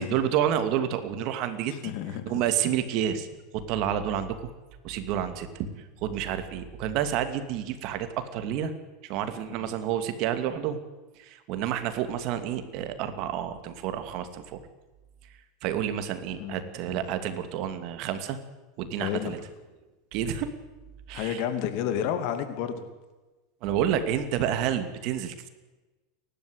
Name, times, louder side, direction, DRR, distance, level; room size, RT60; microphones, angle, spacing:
voice 1, 0.0-1.9 2.3-3.3 3.5-4.5 4.8-8.7 9.0-10.8 11.2-14.6 15.6-18.4 18.8-19.4 20.1-20.5 21.1-21.4 23.6-25.5, right 9 dB, 55° right, 9 dB, 2.6 m, -29 dB
voice 2, 1.7-2.2 9.6-9.7 16.4-16.6 19.0-19.3 21.1-22.9, left 9 dB, 60° left, 9 dB, 2.7 m, -31 dB
29.0 x 12.0 x 8.3 m, 1.2 s
supercardioid pair, 130°, 0 cm